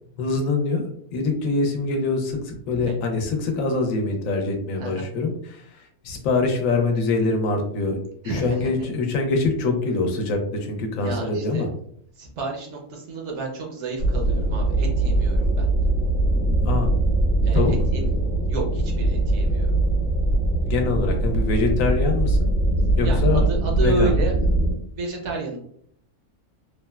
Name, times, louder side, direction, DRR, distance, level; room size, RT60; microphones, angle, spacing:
voice 1, 0.2-8.0 8.2-11.7 16.6-16.9 17.5-17.7 20.6-22.5 23.0-23.4 23.8-24.3, left 3 dB, 80° left, 4 dB, 1.0 m, -24 dB
voice 2, 8.2-8.9 11.0-11.6 12.2-15.7 17.4-18.1 18.5-19.8 22.9-24.3 24.9-25.6, right 3 dB, 65° right, 0 dB, 0.9 m, -31 dB
sound 1, 14.0-24.7, right 2 dB, 35° left, 0.8 m, -21 dB
3.0 x 2.1 x 2.2 m, 0.66 s
omnidirectional pair, 1.4 m